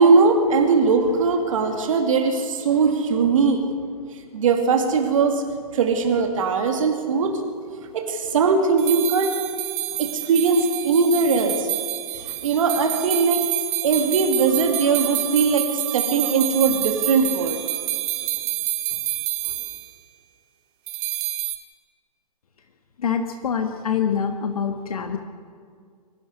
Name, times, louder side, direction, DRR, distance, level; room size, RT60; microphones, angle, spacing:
voice 1, 0.0-3.6 4.3-5.4 5.7-7.4 7.9-9.3 10.0-11.7 12.1-13.4 13.8-17.6, right 4 dB, 55° right, 4 dB, 2.5 m, -20 dB
sound 1, 8.8-19.9 20.9-21.6, right 15 dB, 30° right, 1.9 m, -28 dB
voice 2, 23.0-25.2, left 7 dB, 65° left, 6 dB, 1.5 m, -25 dB
23.5 x 11.5 x 10.0 m, 2.1 s
figure-of-eight pair, 120°, 20 cm